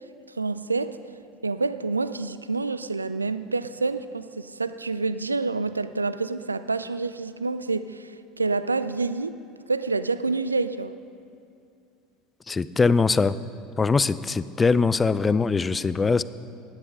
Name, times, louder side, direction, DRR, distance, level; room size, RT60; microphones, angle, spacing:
voice 1, 0.4-1.0 1.4-9.3 9.7-10.9, right 3 dB, 85° right, 13 dB, 0.4 m, -28 dB
voice 2, 12.5-13.4 13.8-16.2, left 4 dB, 20° left, 16 dB, 0.4 m, -22 dB
16.0 x 10.0 x 5.4 m, 2.4 s
figure-of-eight pair, 70°, 0 cm